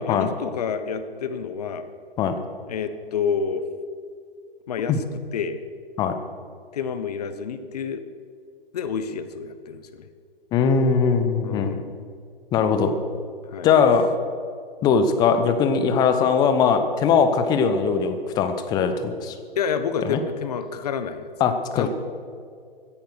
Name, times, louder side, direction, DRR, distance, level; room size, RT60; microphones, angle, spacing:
voice 1, 0.0-1.8 2.7-3.6 4.7-5.6 6.7-8.0 8.7-10.1 11.4-11.9 13.5-13.7 19.6-21.3 21.7-21.9, left 6 dB, 40° left, 10 dB, 1.2 m, -29 dB
voice 2, 10.5-11.7 12.5-12.9 13.6-14.1 14.8-19.4 20.0-20.2 21.4-21.9, left 6 dB, 15° left, 8 dB, 0.9 m, -20 dB
16.5 x 10.5 x 6.7 m, 2.2 s
figure-of-eight pair, 135°, 30 cm